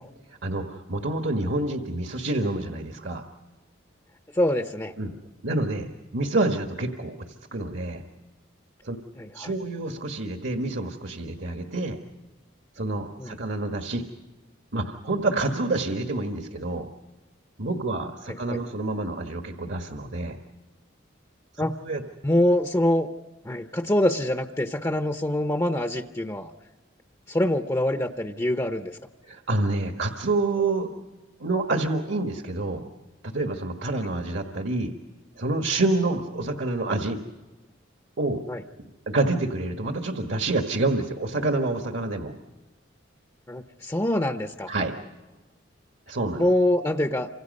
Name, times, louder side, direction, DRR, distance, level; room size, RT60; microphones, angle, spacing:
voice 1, 0.3-3.2 5.0-5.1 5.4-5.9 6.1-8.0 8.8-9.0 9.3-12.0 12.7-14.0 14.7-16.9 17.6-20.4 21.5-22.0 29.3-30.9 31.4-32.8 33.2-34.9 35.4-37.2 38.2-38.4 39.1-42.3 44.7-45.0 46.1-46.5, right 2 dB, 65° right, 4 dB, 1.6 m, -27 dB
voice 2, 4.3-4.9 9.2-9.5 13.2-13.4 18.5-18.6 21.6-21.7 22.2-23.1 23.4-26.5 27.3-29.0 38.5-38.6 43.5-44.7 46.4-47.3, left 1 dB, 15° left, 7 dB, 0.8 m, -24 dB
28.5 x 25.5 x 5.4 m, 1.2 s
head